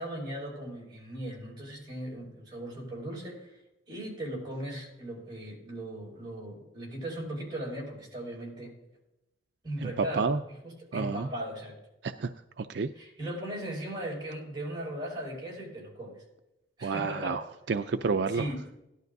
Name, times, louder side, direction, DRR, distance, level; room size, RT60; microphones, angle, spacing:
voice 1, 0.0-3.5 3.9-8.8 9.6-10.3 10.6-11.8 13.0-16.2 16.8-17.4 18.3-18.6, right 1 dB, 25° right, -4 dB, 5.4 m, -38 dB
voice 2, 9.8-10.4 10.9-11.3 12.0-12.3 12.6-12.9 16.8-18.5, right 4 dB, 70° right, 9 dB, 0.4 m, -30 dB
17.5 x 12.0 x 2.7 m, 0.93 s
head